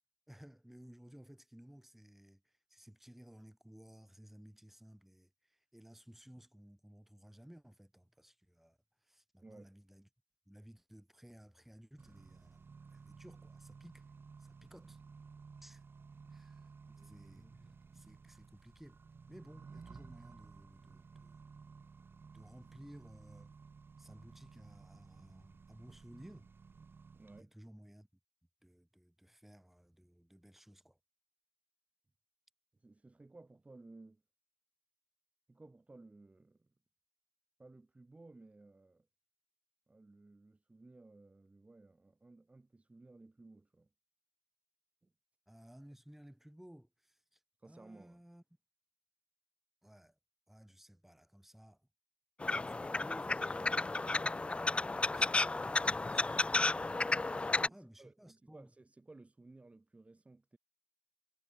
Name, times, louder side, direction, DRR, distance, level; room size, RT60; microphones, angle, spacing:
voice 1, 0.3-10.1 10.5-12.6 12.9-14.1 14.4-15.0 15.6-15.9 16.3-16.7 17.0-19.0 19.3-21.4 22.3-23.5 24.0-26.5 27.4-28.1 28.6-31.0 45.5-48.4 49.8-50.2 50.5-51.9 52.5-54.2 55.0-55.6 57.4-58.7, equal, 5° right, 6.9 m, -57 dB
voice 2, 9.4-9.7 27.1-27.5 32.8-34.2 35.5-36.7 37.6-39.1 39.9-43.9 45.0-45.1 47.6-48.2 57.5-60.6, right 2 dB, 25° right, 6.3 m, -58 dB
Accelerating revving vroom, 12.0-27.4, right 5 dB, 45° right, 2.3 m, -56 dB
sound 1, 52.4-57.7, left 3 dB, 20° left, 0.5 m, -33 dB
cardioid pair, 65°, 5 cm